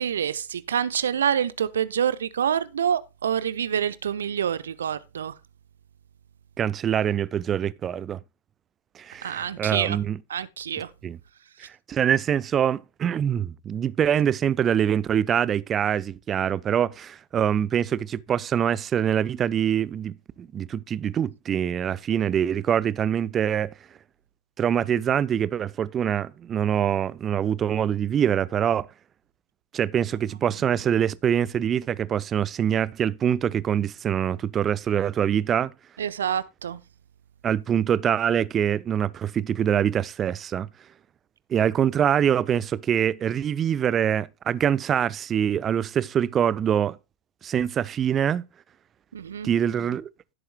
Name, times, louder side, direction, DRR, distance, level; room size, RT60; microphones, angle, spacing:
voice 1, 0.0-5.3 9.2-10.0 10.3-10.9 36.0-36.8 49.1-49.5, right 8 dB, 65° right, 0.9 m, -27 dB
voice 2, 6.6-8.2 9.0-10.2 11.0-11.2 11.9-23.7 24.6-28.9 29.7-35.7 37.4-40.7 41.5-47.0 47.4-48.5 49.4-50.1, right 9 dB, 25° right, 0.7 m, -24 dB
16.5 x 7.9 x 2.2 m
figure-of-eight pair, 90°, 0 cm